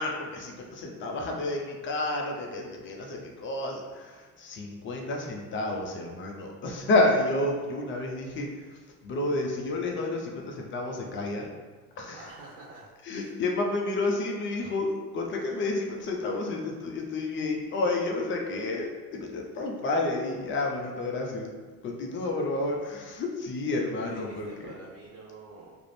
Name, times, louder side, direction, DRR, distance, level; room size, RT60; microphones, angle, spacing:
voice 1, 0.0-11.5 12.0-12.2 13.0-21.5 21.8-24.7, left 2 dB, 30° left, 1 dB, 0.4 m, -30 dB
voice 2, 12.1-13.3 24.0-25.8, right 3 dB, 70° right, -4 dB, 0.7 m, -47 dB
2.4 x 2.0 x 3.1 m, 1.4 s
hypercardioid pair, 75°, 46 cm